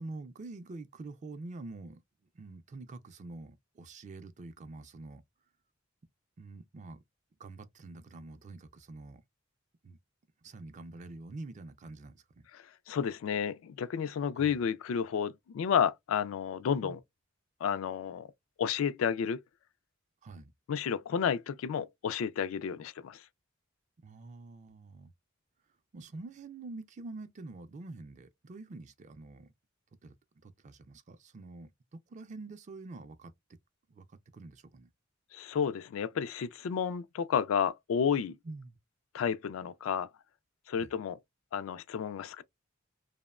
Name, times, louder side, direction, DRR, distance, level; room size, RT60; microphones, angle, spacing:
voice 1, 0.0-2.0 2.3-5.2 6.4-7.0 7.4-9.2 9.8-10.0 10.4-12.5 14.3-14.6 16.8-17.0 20.2-20.5 24.0-25.1 25.9-29.5 30.0-30.1 30.4-33.6 33.9-34.9 38.4-38.8 40.8-40.9, right 2 dB, 35° right, 0.4 m, -46 dB
voice 2, 12.5-17.0 17.6-18.3 18.6-19.4 20.7-23.2 35.3-38.4 39.1-40.1 40.7-41.2 41.5-42.4, left 7 dB, 80° left, 0.3 m, -31 dB
2.9 x 2.0 x 2.3 m
head